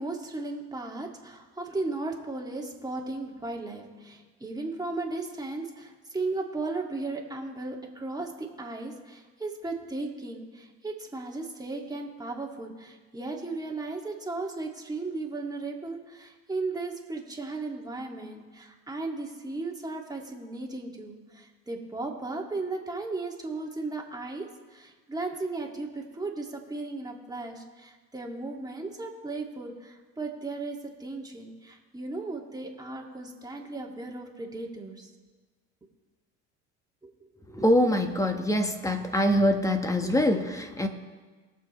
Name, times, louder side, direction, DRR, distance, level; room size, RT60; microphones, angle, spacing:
voice 1, 0.0-24.5 24.7-35.1 37.0-37.1, right 3 dB, 10° right, 0 dB, 2.0 m, -36 dB
voice 2, 37.5-40.9, left 1 dB, 10° left, 6 dB, 1.3 m, -24 dB
21.0 x 7.2 x 3.1 m, 1.4 s
supercardioid pair, 85°, 33 cm